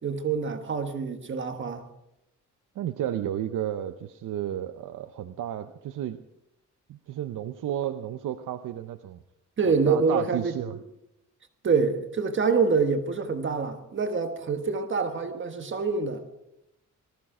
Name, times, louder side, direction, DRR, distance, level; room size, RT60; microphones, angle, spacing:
voice 1, 0.0-1.8 9.6-10.8 11.6-16.2, right 5 dB, 40° right, 7 dB, 1.4 m, -26 dB
voice 2, 2.8-6.2 6.9-9.2 9.7-10.8, right 11 dB, 80° right, 9 dB, 0.8 m, -32 dB
20.0 x 14.0 x 5.0 m, 0.87 s
wide cardioid pair, 140°, 31 cm